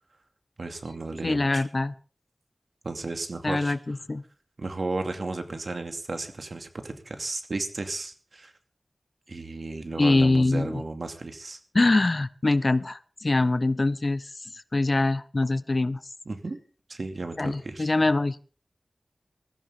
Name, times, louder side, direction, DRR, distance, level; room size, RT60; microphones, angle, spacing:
voice 1, 0.6-1.6 2.8-3.7 4.6-8.5 9.3-11.6 16.3-16.6 16.9-17.9, right 3 dB, 65° right, 6 dB, 2.5 m, -34 dB
voice 2, 1.2-1.9 3.4-4.2 10.0-10.8 11.7-14.2 14.7-16.0 17.4-18.4, left 2 dB, 45° left, 16 dB, 0.8 m, -23 dB
21.0 x 14.5 x 3.8 m, 0.38 s
wide cardioid pair, 65°, 0 cm